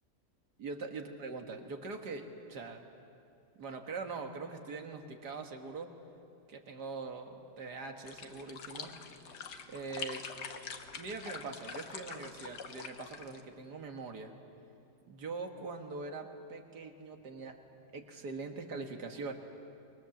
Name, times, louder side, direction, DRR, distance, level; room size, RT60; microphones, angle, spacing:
voice 1, 0.6-2.9 3.6-5.9 6.5-8.9 9.7-10.2 10.9-14.3 15.1-17.6 17.9-19.3, right 4 dB, 75° right, 4 dB, 2.2 m, -42 dB
sound 1, 8.0-13.4, left 6 dB, 90° left, 1.8 m, -45 dB
25.5 x 23.0 x 7.3 m, 2.7 s
omnidirectional pair, 1.8 m